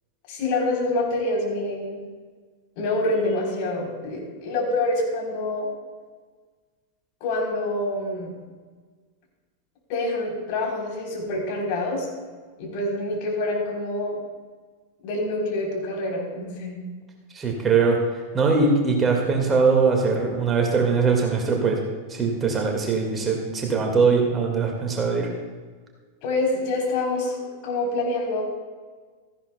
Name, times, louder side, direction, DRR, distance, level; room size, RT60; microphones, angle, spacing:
voice 1, 0.3-2.0 2.8-5.7 7.2-8.3 9.9-12.1 12.6-14.2 15.0-16.8 26.2-27.4 27.6-28.4, left 2 dB, 45° left, -1 dB, 3.6 m, -26 dB
voice 2, 17.3-18.0 18.3-21.8 22.1-25.3, right 4 dB, 20° right, 1 dB, 1.8 m, -21 dB
16.5 x 14.0 x 2.2 m, 1.5 s
figure-of-eight pair, 90°, 0 cm